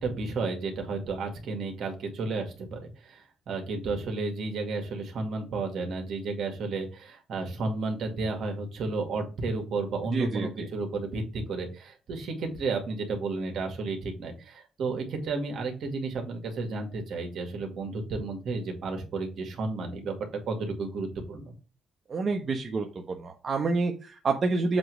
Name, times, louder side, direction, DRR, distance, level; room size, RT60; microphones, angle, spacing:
voice 1, 0.0-20.1 20.5-21.5, right 3 dB, 65° right, 3 dB, 2.2 m, -32 dB
voice 2, 10.1-10.7 22.1-22.9 23.2-24.8, right 3 dB, 45° right, 3 dB, 1.0 m, -28 dB
7.6 x 3.1 x 6.2 m, 0.32 s
cardioid pair, 90°, 0 cm